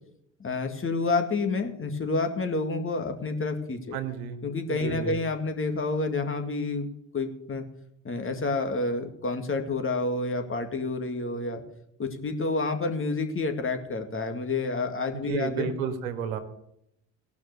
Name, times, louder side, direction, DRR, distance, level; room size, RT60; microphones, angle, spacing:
voice 1, 0.4-4.0 4.4-6.9 7.1-7.6 8.0-11.6 12.0-15.7, left 3 dB, 30° left, 5 dB, 2.2 m, -29 dB
voice 2, 3.9-4.4 4.7-5.2 15.1-16.4, right 7 dB, 85° right, 7 dB, 1.6 m, -31 dB
17.5 x 6.0 x 6.7 m, 0.76 s
hypercardioid pair, 70°, 40 cm